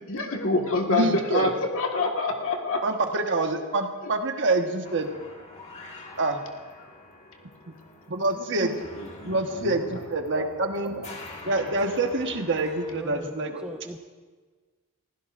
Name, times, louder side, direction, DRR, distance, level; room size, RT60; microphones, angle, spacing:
voice 1, 0.1-2.8 9.0-9.9 10.9-11.0, left 3 dB, 65° left, 2 dB, 1.7 m, -27 dB
voice 2, 0.9-1.5 2.8-5.1 6.2-6.4 8.1-8.7 9.2-11.1 11.5-13.6, right 2 dB, 55° right, 4 dB, 1.4 m, -26 dB
sound 1, 4.8-13.0, left 2 dB, 30° left, 1.8 m, -45 dB
voice 3, 12.9-14.0, right 1 dB, 5° right, 2 dB, 0.6 m, -39 dB
29.5 x 15.5 x 2.6 m, 1.4 s
head